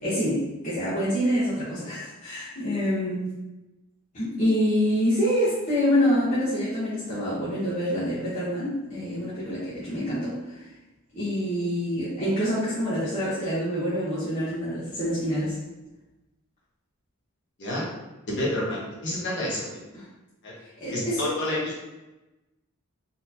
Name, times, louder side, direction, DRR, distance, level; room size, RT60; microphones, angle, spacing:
voice 1, 0.0-3.3 4.1-10.6 11.1-15.6 19.9-20.0 20.8-21.3, equal, 40° left, -11 dB, 1.0 m, -26 dB
voice 2, 18.3-19.8 20.4-20.5 20.9-21.8, left 1 dB, 55° left, -5 dB, 1.3 m, -29 dB
4.1 x 3.1 x 2.7 m, 1.0 s
head